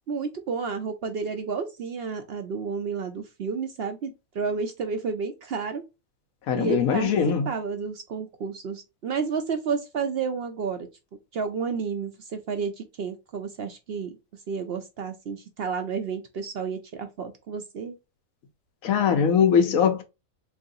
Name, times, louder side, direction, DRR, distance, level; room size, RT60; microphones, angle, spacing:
voice 1, 0.1-5.8 6.5-7.1 7.5-10.9 11.3-14.2 14.5-17.9, right 5 dB, 60° right, 0.7 m, -31 dB
voice 2, 6.5-7.5 18.8-20.0, left 7 dB, 85° left, 1.2 m, -21 dB
3.8 x 3.1 x 2.6 m
omnidirectional pair, 1.4 m